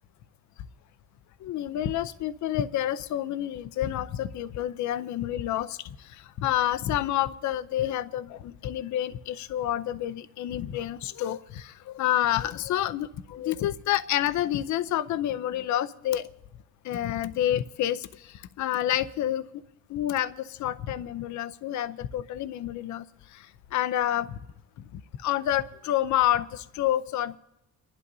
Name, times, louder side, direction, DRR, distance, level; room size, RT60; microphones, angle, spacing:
voice 1, 1.4-16.3 16.8-19.4 19.9-23.1 23.3-24.3 24.9-27.4, left 12 dB, 70° left, 13 dB, 0.6 m, -29 dB
30.0 x 11.0 x 2.7 m, 0.92 s
cardioid pair, 90°, 30 cm